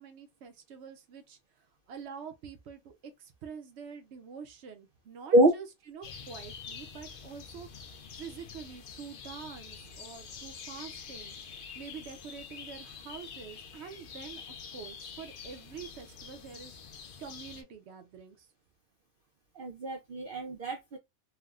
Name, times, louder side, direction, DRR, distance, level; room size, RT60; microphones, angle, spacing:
voice 1, 0.0-11.4 11.7-16.8 17.2-18.5, right 6 dB, 60° right, 0.8 m, -46 dB
sound 1, 6.0-17.6, left 6 dB, 75° left, 0.4 m, -46 dB
voice 2, 19.5-21.0, right 1 dB, 85° right, 0.4 m, -25 dB
3.3 x 2.2 x 2.3 m
omnidirectional pair, 1.5 m